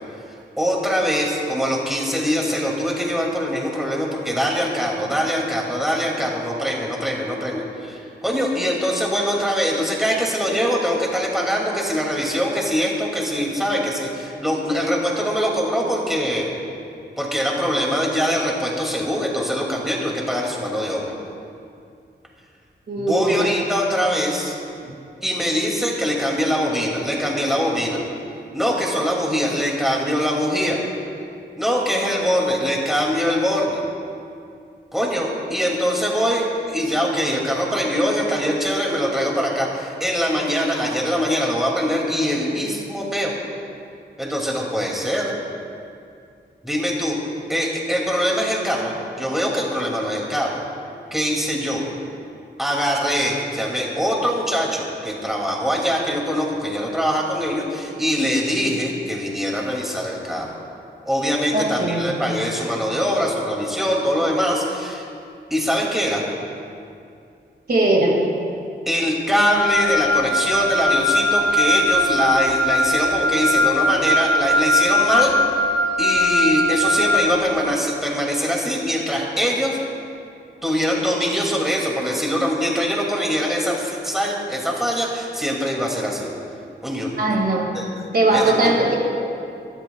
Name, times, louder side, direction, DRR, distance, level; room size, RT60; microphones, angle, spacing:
voice 1, 0.6-16.5 17.2-21.1 23.0-24.6 25.2-28.0 28.5-30.8 31.6-33.8 34.9-43.3 44.2-45.3 46.6-47.2 47.5-50.6 51.1-51.8 52.6-60.5 61.1-65.0 65.5-66.2 68.9-75.3 76.0-79.8 80.6-86.3 86.8-87.4 87.7-87.8 88.3-88.5, equal, ahead, -3 dB, 2.5 m, -23 dB
voice 2, 22.9-23.6 24.8-24.9 61.5-62.1 67.7-68.2 87.2-87.7 88.1-89.0, right 2 dB, 55° right, -1 dB, 2.1 m, -19 dB
Wind instrument woodwind instrument, 69.5-77.3, left 1 dB, 80° right, 3.1 m, -20 dB
25.5 x 13.0 x 2.4 m, 2.4 s
wide cardioid pair, 115°, 19 cm